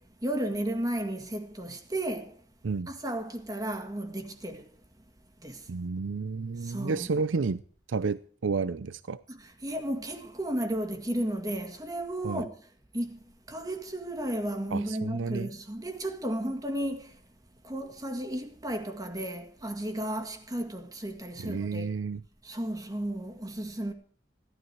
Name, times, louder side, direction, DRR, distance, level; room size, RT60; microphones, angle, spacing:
voice 1, 0.0-2.4 2.9-4.7 5.4-5.7 6.6-7.1 9.3-12.6 12.9-17.2 17.6-21.9 22.4-23.9, right 1 dB, 20° right, 1.9 m, -34 dB
voice 2, 5.7-7.6 7.9-9.2 12.2-12.4 14.7-15.5 21.4-22.2, right 4 dB, 85° right, 0.5 m, -31 dB
17.0 x 12.5 x 4.7 m
head